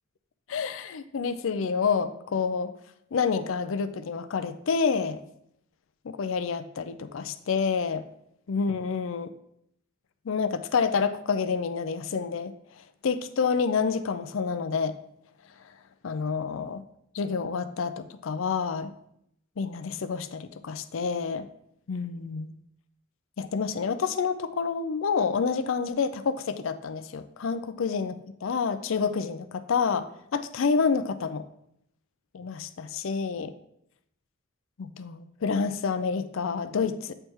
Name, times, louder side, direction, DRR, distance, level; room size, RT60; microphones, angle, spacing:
voice 1, 0.5-2.7 3.1-5.2 6.0-8.0 8.5-9.3 10.3-12.5 13.0-15.0 16.0-16.8 17.1-18.9 19.6-21.5 21.9-22.5 23.4-30.1 30.3-31.4 32.3-33.5 34.8-37.1, left 5 dB, 70° left, 12 dB, 0.5 m, -28 dB
8.6 x 3.3 x 4.5 m, 0.74 s
head